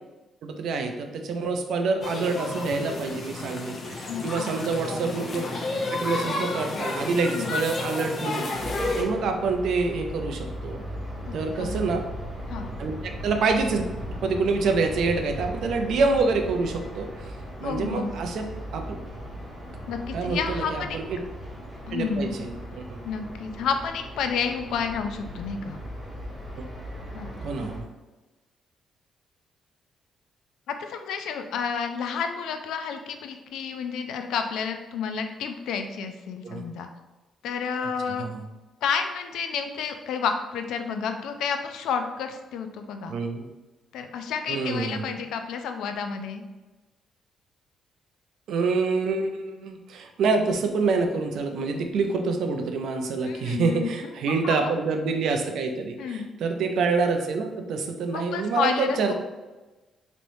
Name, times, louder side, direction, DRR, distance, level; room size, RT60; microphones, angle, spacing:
voice 1, 0.4-5.5 5.9-8.5 9.0-10.8 11.3-12.0 12.8-13.0 13.2-13.8 14.2-17.3 17.6-19.0 20.1-21.2 21.9-23.0 27.4-27.9 36.4-36.7 38.2-38.4 43.1-43.5 44.5-45.1 48.5-59.1, right 4 dB, 75° right, 5 dB, 0.4 m, -27 dB
sound 1, 2.0-9.0, left 2 dB, 45° left, 0.6 m, -31 dB
voice 2, 4.1-4.5 7.3-7.5 11.3-11.8 12.5-12.7 17.6-18.2 19.9-21.0 21.9-22.3 23.0-25.8 27.1-27.3 27.6-27.7 30.7-36.9 37.4-38.3 38.8-43.2 43.9-46.4 53.3-53.9 54.4-54.7 56.0-56.3 58.1-59.1, left 6 dB, 85° left, 6 dB, 0.3 m, -30 dB
sound 2, 8.5-27.8, equal, 20° left, 1.3 m, -37 dB
3.3 x 2.9 x 2.6 m, 1.1 s
cardioid pair, 90°, 0 cm